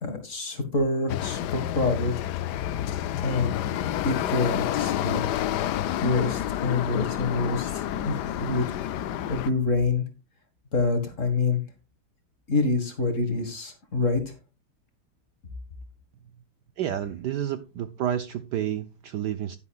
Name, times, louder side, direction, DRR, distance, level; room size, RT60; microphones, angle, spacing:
voice 1, 0.0-2.1 3.2-3.6 4.0-5.4 6.0-8.7 9.3-10.1 10.7-11.6 12.5-14.2, left 3 dB, 40° left, 2.2 m, -26 dB
sound 1, 1.1-9.5, left 11 dB, 70° left, 1.0 m, -29 dB
voice 2, 16.8-19.6, right 10 dB, 70° right, 1.1 m, -30 dB
11.0 x 11.0 x 2.4 m
omnidirectional pair, 2.3 m